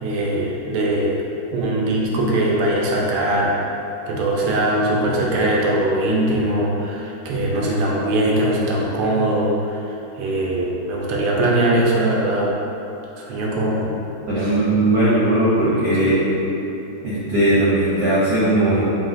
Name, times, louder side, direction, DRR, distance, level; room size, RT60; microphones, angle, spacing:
voice 1, 0.0-1.2 1.5-3.6 4.1-9.8 10.1-12.5 13.2-13.9 14.4-14.6 16.0-16.5, right 1 dB, 90° right, -3 dB, 1.6 m, -21 dB
voice 2, 14.3-16.2 17.0-18.8, right 1 dB, 60° right, -10 dB, 1.0 m, -18 dB
5.2 x 2.8 x 2.5 m, 2.9 s
omnidirectional pair, 2.3 m